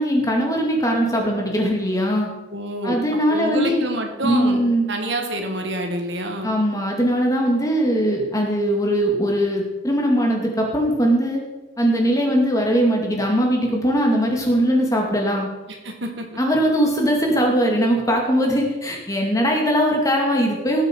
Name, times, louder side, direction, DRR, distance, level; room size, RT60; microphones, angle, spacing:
voice 1, 0.0-2.3 2.8-3.8 4.2-4.9 6.4-11.4 11.8-15.5 16.4-20.8, equal, 15° left, 0 dB, 2.3 m, -20 dB
voice 2, 2.5-3.0 3.3-4.6 4.9-6.6 15.7-16.3, right 1 dB, 65° right, 4 dB, 1.9 m, -27 dB
19.0 x 7.6 x 4.6 m, 1.2 s
head